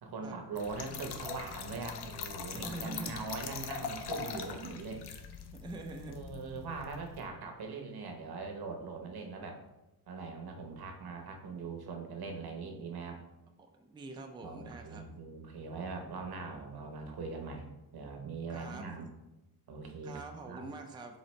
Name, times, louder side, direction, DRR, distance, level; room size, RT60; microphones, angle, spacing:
voice 1, 0.0-5.0 5.7-9.6 10.1-13.2 14.4-17.7 17.9-19.1 19.7-20.2 20.4-20.6, right 4 dB, 70° right, 3 dB, 0.9 m, -41 dB
Trickle dribble / Fill (with liquid), 0.5-7.3, left 6 dB, 85° left, 0.6 m, -42 dB
voice 2, 2.5-3.2 5.5-6.2 13.8-15.1 18.5-18.9 20.0-21.2, right 2 dB, 10° right, 3 dB, 0.4 m, -44 dB
4.0 x 4.0 x 3.1 m, 0.95 s
wide cardioid pair, 115°, 39 cm